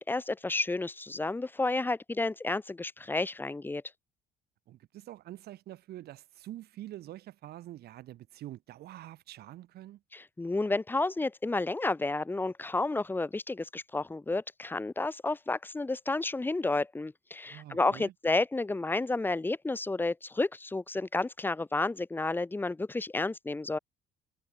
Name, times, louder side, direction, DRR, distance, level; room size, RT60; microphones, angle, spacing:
voice 1, 0.0-3.8 10.1-23.8, left 2 dB, 10° left, 0.8 m, -31 dB
voice 2, 4.7-10.0 17.5-18.1, right 14 dB, 70° right, 2.4 m, -46 dB
cardioid pair, 110°, 17 cm